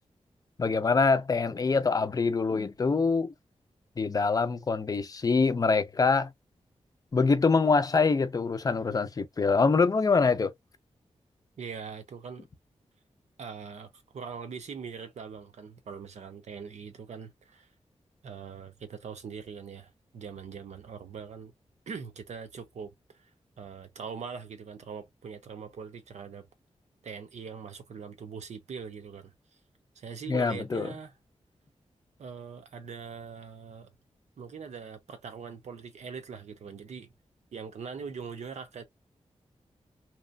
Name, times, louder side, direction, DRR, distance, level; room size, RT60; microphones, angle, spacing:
voice 1, 0.6-3.3 4.0-6.3 7.1-10.5 30.3-30.9, left 4 dB, 35° left, 0.4 m, -25 dB
voice 2, 11.6-12.5 13.4-17.7 18.2-21.5 21.9-23.3 23.6-26.4 27.0-29.3 30.0-31.1 32.2-33.9 34.4-37.1 37.5-38.8, right 6 dB, 90° right, 0.8 m, -42 dB
2.9 x 2.1 x 2.5 m
wide cardioid pair, 120°, 11 cm